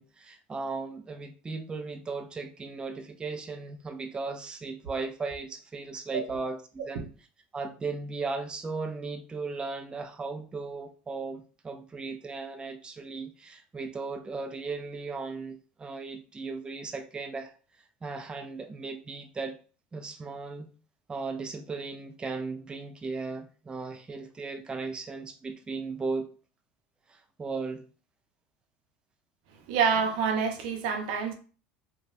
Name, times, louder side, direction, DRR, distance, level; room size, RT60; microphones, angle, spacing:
voice 1, 0.0-7.1 7.5-17.5 18.0-19.6 19.9-20.7 21.1-26.3 27.1-27.8, right 4 dB, 20° right, 0.4 m, -36 dB
voice 2, 29.7-31.3, right 6 dB, 75° right, 0.6 m, -27 dB
3.0 x 2.2 x 2.5 m
supercardioid pair, 95°, 5 cm